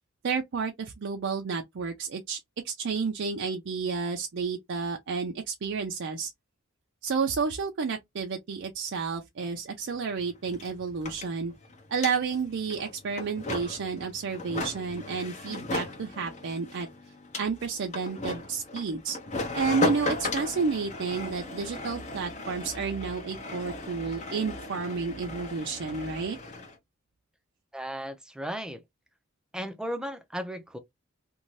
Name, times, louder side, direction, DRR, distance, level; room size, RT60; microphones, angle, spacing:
voice 1, 0.2-2.4 2.6-6.3 7.0-11.5 11.9-16.9 17.4-19.2 19.5-26.4, right 5 dB, 60° right, 0.5 m, -31 dB
sound 1, 9.9-10.0 10.1-26.7, left 2 dB, 35° left, 0.8 m, -36 dB
voice 2, 27.7-28.8 29.5-30.8, equal, 5° right, 0.5 m, -35 dB
2.6 x 2.2 x 3.1 m
head